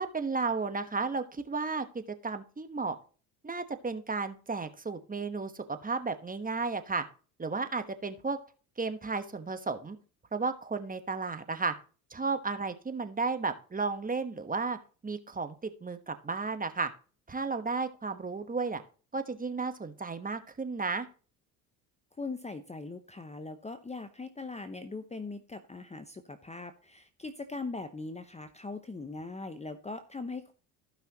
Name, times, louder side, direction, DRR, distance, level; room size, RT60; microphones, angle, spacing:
voice 1, 0.0-3.0 3.4-7.0 7.4-8.4 8.8-10.0 10.3-11.7 12.1-14.8 15.0-16.9 17.3-18.8 19.1-21.1, right 4 dB, 15° right, 9 dB, 1.2 m, -33 dB
voice 2, 22.2-30.5, left 3 dB, 15° left, 10 dB, 0.8 m, -40 dB
14.5 x 5.7 x 2.9 m, 0.37 s
hypercardioid pair, 65°, 48 cm